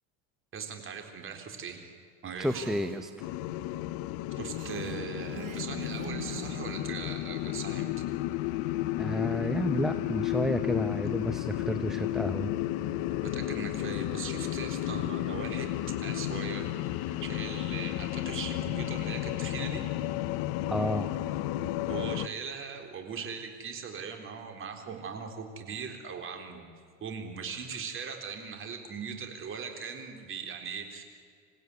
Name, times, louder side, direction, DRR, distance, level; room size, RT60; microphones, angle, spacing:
voice 1, 0.5-1.9 2.2-2.8 4.4-7.9 13.2-19.9 21.9-26.6 27.0-31.0, right 6 dB, 30° right, 5 dB, 3.8 m, -40 dB
voice 2, 2.4-3.1 9.0-12.5 20.7-21.1, equal, ahead, 8 dB, 0.7 m, -31 dB
Female speech woman speaking, 2.4-3.1 4.5-6.8, right 8 dB, 50° right, 3.8 m, -43 dB
sound 1, 3.2-22.3, left 14 dB, 60° left, 0.9 m, -33 dB
27.5 x 16.0 x 9.6 m, 2.2 s
supercardioid pair, 135°, 39 cm